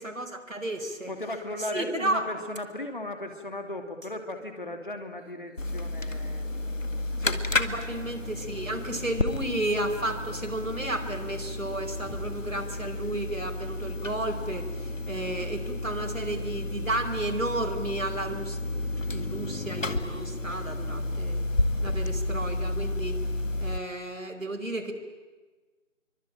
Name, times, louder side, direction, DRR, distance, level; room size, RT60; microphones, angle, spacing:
voice 1, 0.0-1.1 1.7-2.2 7.5-21.4 21.8-23.2 23.6-24.9, right 1 dB, 85° right, 4 dB, 4.8 m, -33 dB
voice 2, 1.1-6.5 7.2-7.4 7.9-8.0, left 1 dB, 40° left, 5 dB, 2.9 m, -36 dB
sound 1, 5.6-23.8, left 2 dB, 75° left, 2.1 m, -32 dB
26.0 x 24.5 x 9.0 m, 1.3 s
figure-of-eight pair, 175°, 39 cm